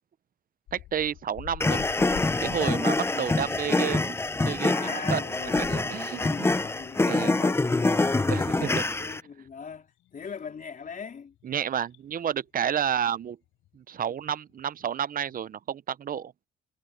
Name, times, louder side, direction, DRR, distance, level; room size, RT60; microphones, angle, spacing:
sound 1, 0.7-14.9 15.2-15.4, left 14 dB, 85° left, 5.9 m, -49 dB
voice 1, 0.7-1.8 2.4-4.2 4.4-6.5 7.1-7.4 8.3-8.8 11.4-13.4 13.7-16.3, right 9 dB, 45° right, 0.7 m, -31 dB
sound 2, 1.6-9.2, left 2 dB, 10° left, 0.5 m, -25 dB
voice 2, 3.1-3.5 4.7-11.4, left 6 dB, 45° left, 3.8 m, -41 dB
cardioid pair, 90°, 20 cm